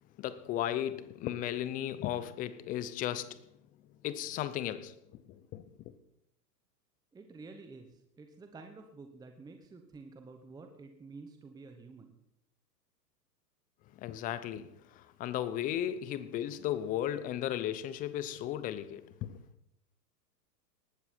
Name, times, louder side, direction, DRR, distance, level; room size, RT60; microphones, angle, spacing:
voice 1, 0.2-3.4 4.0-5.7 13.9-19.4, left 11 dB, 15° left, 0.6 m, -35 dB
voice 2, 7.1-12.2, right 3 dB, 10° right, 1.1 m, -50 dB
19.0 x 13.5 x 4.4 m
hypercardioid pair, 115°, 50 cm